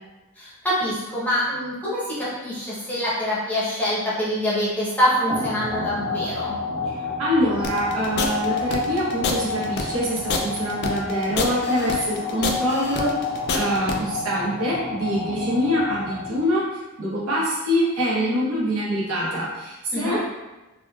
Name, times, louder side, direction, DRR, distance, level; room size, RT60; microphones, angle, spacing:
voice 1, 0.4-6.6 19.9-20.2, equal, 10° left, -9 dB, 0.8 m, -25 dB
sound 1, 5.3-16.6, left 4 dB, 50° right, 1.0 m, -30 dB
voice 2, 6.9-20.2, equal, 75° right, -6 dB, 0.9 m, -25 dB
sound 2, 7.6-14.0, left 4 dB, 50° left, 0.3 m, -27 dB
3.4 x 2.4 x 2.3 m, 1.1 s
head